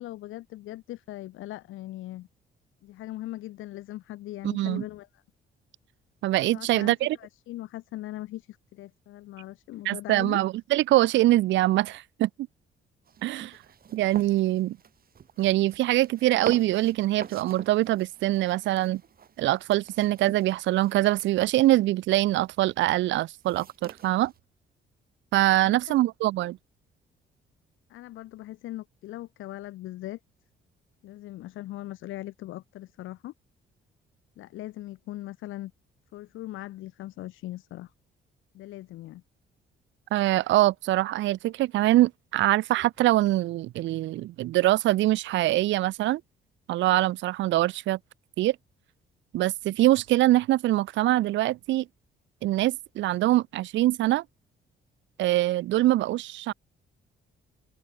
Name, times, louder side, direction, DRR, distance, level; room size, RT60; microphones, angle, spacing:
voice 1, 0.0-2.3 2.8-5.2 6.5-10.4 25.6-26.0 27.9-30.2 31.0-33.3 34.4-35.7 36.1-37.9 38.5-39.2, left 15 dB, 85° left, 1.3 m, -40 dB
voice 2, 4.4-4.8 6.2-7.2 9.9-12.3 13.2-13.6 13.9-14.8 15.4-19.0 19.4-24.3 25.3-26.6 40.1-46.2 46.7-48.0 48.4-48.6 49.3-51.9 52.4-54.2 55.2-56.5, right 16 dB, 70° right, 0.4 m, -24 dB
sound 1, 13.1-24.4, right 7 dB, 50° right, 2.1 m, -44 dB
open air
cardioid pair, 90°, 20 cm